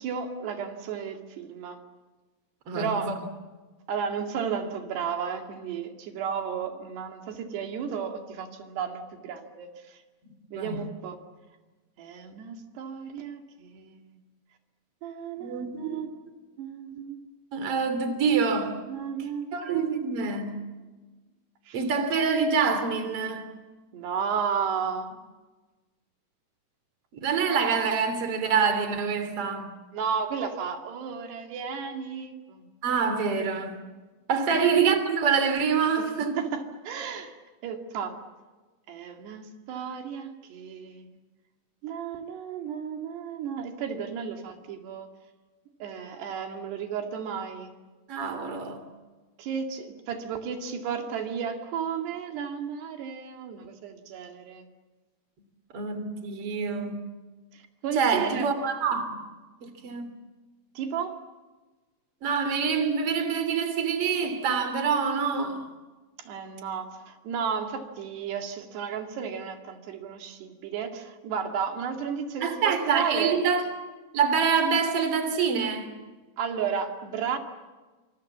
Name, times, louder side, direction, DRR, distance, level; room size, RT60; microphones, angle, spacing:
voice 1, 0.0-1.8 2.7-3.1 3.9-10.0 10.5-11.2 12.0-14.2 15.0-16.2 16.6-17.2 18.9-19.9 21.7-21.8 23.9-25.1 29.9-32.7 34.5-34.7 36.4-37.3 37.6-38.2 38.9-41.1 41.8-45.1 45.8-47.7 49.4-54.7 57.5-58.5 60.8-61.2 66.2-73.4 76.4-77.4, right 7 dB, 85° right, 4.3 m, -33 dB
voice 2, 2.7-3.2 10.5-10.8 15.4-16.1 17.5-18.8 19.5-20.6 21.7-23.5 27.1-29.7 32.8-33.9 34.3-36.4 48.1-48.8 55.7-57.0 58.0-59.2 59.6-60.1 62.2-65.7 72.4-73.6 74.1-75.9, right 5 dB, 40° right, 3.7 m, -26 dB
28.0 x 26.5 x 7.4 m
omnidirectional pair, 4.6 m